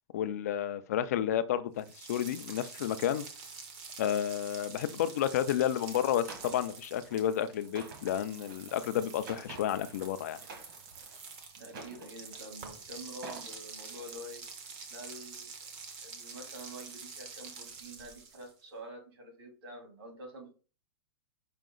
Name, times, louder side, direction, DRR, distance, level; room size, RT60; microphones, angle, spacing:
voice 1, 0.1-3.2 4.0-10.4, left 10 dB, 40° left, 0.4 m, -31 dB
sound 1, 1.8-18.6, right 5 dB, 25° right, 0.6 m, -47 dB
sound 2, 6.3-6.6 7.0-7.2 7.6-10.1 10.4-11.2 11.7-12.5 13.0-13.5 13.9-14.2, right 4 dB, 55° right, 1.3 m, -48 dB
voice 2, 11.6-14.4 14.9-15.5 16.0-20.5, right 1 dB, 75° right, 2.3 m, -47 dB
5.1 x 2.8 x 3.8 m
supercardioid pair, 180°, 13 cm